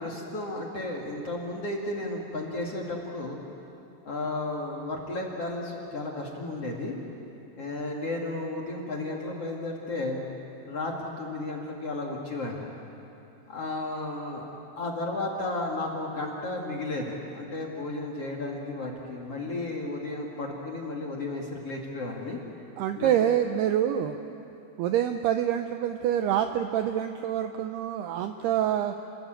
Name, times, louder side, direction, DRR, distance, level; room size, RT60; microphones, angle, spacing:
voice 1, 0.0-3.4 4.0-7.0 7.6-10.2 10.7-12.7 13.5-14.5 14.8-22.4 23.0-23.1, left 2 dB, 40° left, -2 dB, 2.5 m, -33 dB
voice 2, 22.8-24.2 24.8-28.9, right 10 dB, 80° right, 7 dB, 2.4 m, -26 dB
30.0 x 21.0 x 9.0 m, 2.9 s
omnidirectional pair, 5.4 m